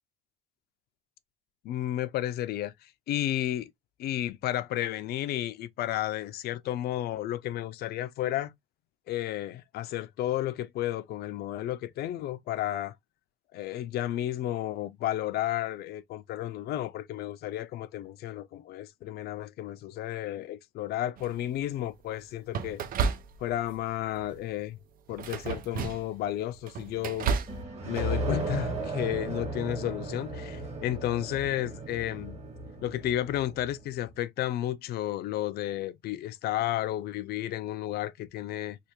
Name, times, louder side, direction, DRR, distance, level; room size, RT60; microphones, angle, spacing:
voice 1, 1.6-3.7 4.0-8.5 9.1-12.9 13.5-22.8 23.4-24.8 25.1-27.3 27.8-32.4 32.8-38.8, left 13 dB, 70° left, 0.5 m, -32 dB
sound 1, 21.2-21.6 22.5-23.7 24.1-24.5 25.1-26.2 26.5-27.6, right 6 dB, 55° right, 0.6 m, -32 dB
sound 2, 27.5-33.8, right 2 dB, 40° right, 1.8 m, -35 dB
3.4 x 2.3 x 2.9 m
cardioid pair, 110°, 17 cm